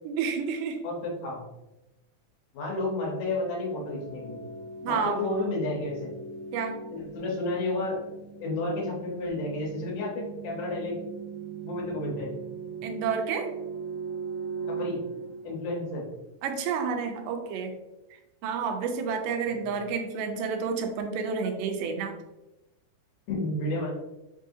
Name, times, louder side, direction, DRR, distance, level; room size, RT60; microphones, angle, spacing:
voice 1, 0.0-0.8 4.8-5.5 6.5-6.8 12.8-13.5 16.4-17.7 18.4-22.2, right 6 dB, 90° right, 5 dB, 2.2 m, -30 dB
voice 2, 0.8-1.4 2.5-4.4 4.9-6.1 6.9-8.0 8.4-10.9 11.6-12.4 14.8-15.0 15.4-16.0 19.5-19.6 23.3-23.9, left 2 dB, 75° left, -2 dB, 2.5 m, -31 dB
sound 1, 3.4-16.1, right 5 dB, 45° left, 1.1 m, -39 dB
5.5 x 2.7 x 2.6 m, 0.98 s
omnidirectional pair, 3.7 m